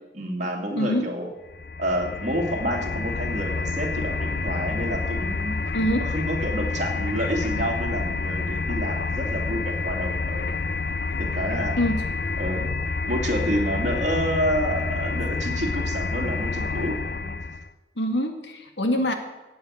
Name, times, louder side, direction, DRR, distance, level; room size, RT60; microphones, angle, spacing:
voice 1, 0.1-1.3 1.8-10.5 11.2-11.8 12.4-12.7 13.1-17.4, equal, 40° right, -1 dB, 2.5 m, -29 dB
voice 2, 0.8-1.1 5.7-6.1 11.8-12.1 18.0-19.1, equal, 75° left, 6 dB, 1.9 m, -24 dB
sound 1, 1.5-17.7, left 4 dB, 55° left, 0.6 m, -28 dB
16.5 x 8.1 x 6.5 m, 1.1 s
head